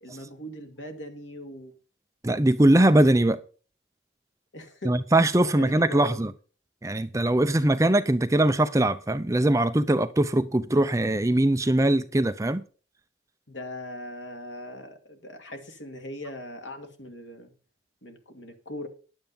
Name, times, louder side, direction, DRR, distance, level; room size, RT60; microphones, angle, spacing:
voice 1, 0.0-1.7 4.5-5.0 5.4-6.2 13.5-17.5 18.0-18.9, left 1 dB, 85° left, 2.4 m, -40 dB
voice 2, 2.2-3.4 4.9-6.3 6.8-12.6, right 1 dB, 15° right, 0.5 m, -21 dB
10.5 x 8.9 x 5.5 m
head